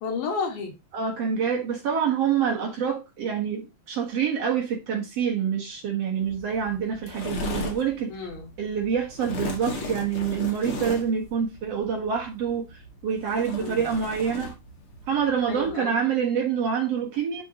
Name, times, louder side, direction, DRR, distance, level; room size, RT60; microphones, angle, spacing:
voice 1, 0.0-0.8 8.1-8.5 13.6-14.0 15.5-16.0, left 4 dB, 90° left, 3.5 m, -32 dB
voice 2, 0.9-8.1 8.6-14.5 15.1-17.4, right 7 dB, 55° right, 2.1 m, -26 dB
sound 1, 6.2-15.7, left 3 dB, 45° left, 1.9 m, -37 dB
10.5 x 4.5 x 2.9 m
omnidirectional pair, 4.0 m